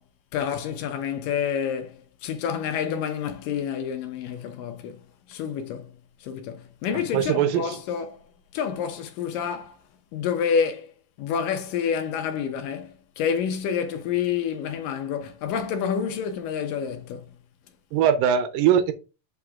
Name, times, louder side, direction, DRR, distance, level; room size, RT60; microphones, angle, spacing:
voice 1, 0.3-5.0 5.3-8.2 8.5-9.8 10.1-10.9 11.2-17.4, left 7 dB, 75° left, 2.5 m, -28 dB
voice 2, 7.1-7.8 17.9-18.9, right 9 dB, 80° right, 2.5 m, -21 dB
6.5 x 5.8 x 3.5 m
omnidirectional pair, 4.0 m